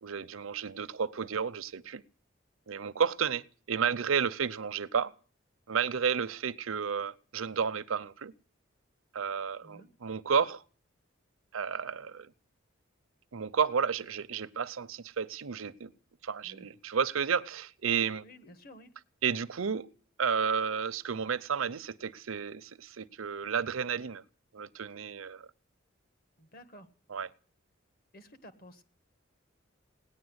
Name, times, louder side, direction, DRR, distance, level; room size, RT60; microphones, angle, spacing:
voice 1, 0.0-2.0 2.7-5.1 5.7-8.3 9.1-10.6 11.5-12.3 13.3-15.9 16.2-18.2 19.2-19.9 20.2-24.2 24.5-25.5 27.1-27.3, right 6 dB, 90° right, 16 dB, 0.7 m, -32 dB
voice 2, 18.2-18.9 26.4-26.9 28.1-28.8, equal, 45° left, 9 dB, 1.6 m, -52 dB
18.0 x 10.0 x 8.0 m, 0.43 s
head